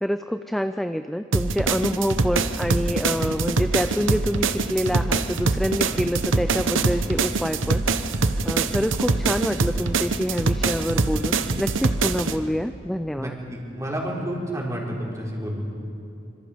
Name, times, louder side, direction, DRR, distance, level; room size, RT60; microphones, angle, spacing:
voice 1, 0.0-7.8 8.4-13.4, equal, ahead, 9 dB, 0.4 m, -26 dB
sound 1, 1.3-12.4, right 3 dB, 90° right, 1.0 m, -24 dB
voice 2, 13.2-15.7, equal, 15° right, -3 dB, 4.2 m, -30 dB
27.0 x 25.5 x 5.1 m, 2.8 s
head